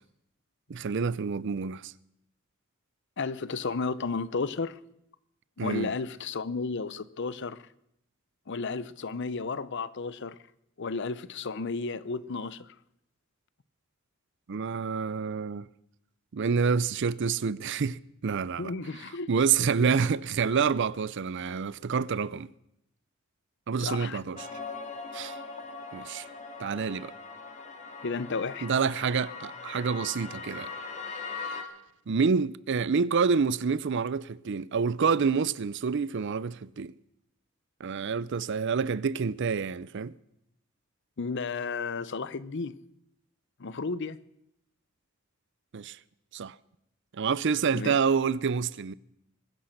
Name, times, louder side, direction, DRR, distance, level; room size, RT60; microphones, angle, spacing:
voice 1, 0.7-1.9 5.6-5.9 14.5-15.7 16.3-18.7 19.3-22.5 23.7-24.5 25.1-25.4 25.9-26.3 26.6-27.1 28.6-30.7 32.1-36.9 37.8-40.1 45.7-46.0 46.3-46.5 47.2-48.9, right 5 dB, 60° right, 0.5 m, -28 dB
voice 2, 3.2-4.8 5.6-7.6 8.5-10.4 10.8-12.7 18.6-19.3 23.8-24.2 28.0-28.7 41.2-42.7 43.6-44.2 47.7-48.0, left 4 dB, 60° left, 0.7 m, -33 dB
sound 1, 24.4-31.6, left 4 dB, 35° left, 2.0 m, -40 dB
21.5 x 10.0 x 6.6 m
head